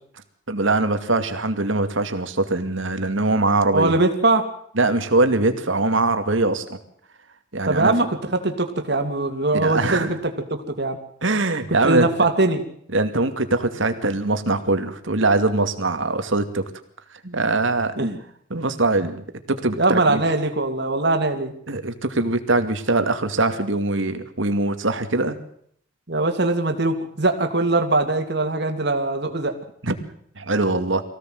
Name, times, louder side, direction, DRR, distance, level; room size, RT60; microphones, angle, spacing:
voice 1, 0.5-4.0 4.8-6.8 7.5-7.9 9.5-10.2 11.2-12.1 12.9-16.7 17.3-17.9 18.5-20.2 21.7-25.4 29.8-29.9 30.4-31.0, right 2 dB, 70° right, 8 dB, 2.4 m, -22 dB
voice 2, 3.7-4.4 7.7-8.2 8.4-11.0 11.8-12.6 17.2-17.4 18.0-18.2 19.7-21.5 26.1-29.5, right 2 dB, 55° right, 5 dB, 2.7 m, -21 dB
24.0 x 16.5 x 7.9 m, 0.66 s
head